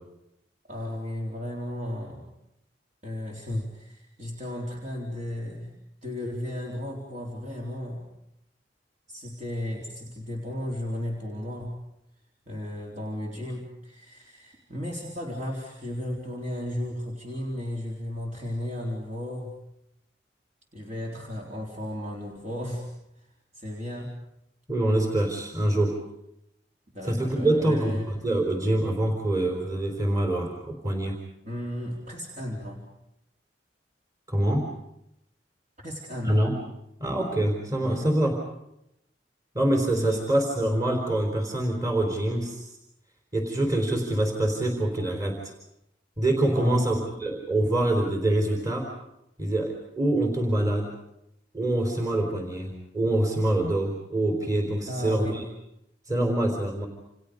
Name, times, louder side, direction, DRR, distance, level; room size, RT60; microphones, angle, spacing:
voice 1, 0.7-2.3 3.0-5.7 6.0-8.1 9.1-11.8 12.5-19.6 20.7-22.9 23.2-23.3 23.5-24.1 26.9-28.1 31.4-32.9 35.8-36.5 37.8-38.0 39.9-40.2 46.5-47.1 54.9-55.4, left 1 dB, 40° right, -2 dB, 4.2 m, -34 dB
voice 2, 24.7-25.9 27.0-31.2 34.3-34.6 36.2-36.5 37.0-38.4 39.5-42.7 43.3-45.5 46.2-48.9 49.4-50.9 51.5-55.4 56.1-56.9, right 1 dB, 20° right, 2 dB, 4.1 m, -25 dB
29.5 x 29.0 x 5.3 m, 0.82 s
head